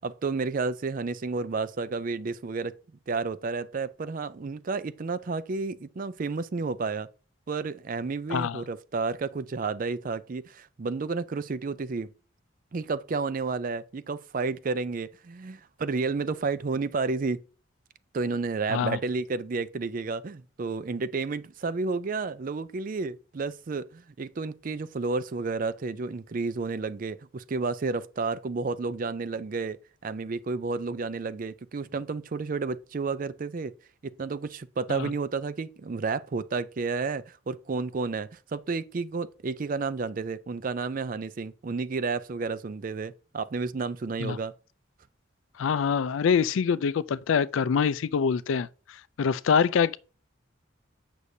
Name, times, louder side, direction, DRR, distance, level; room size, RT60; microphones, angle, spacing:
voice 1, 0.0-2.8 3.1-7.1 7.5-12.1 12.7-17.4 18.1-33.7 34.0-44.5, right 4 dB, 40° right, 0.4 m, -31 dB
voice 2, 8.3-8.6 18.7-19.0 34.9-35.1 44.2-44.4 45.6-48.7 49.2-50.0, left 6 dB, 75° left, 0.4 m, -25 dB
8.2 x 6.1 x 2.7 m
head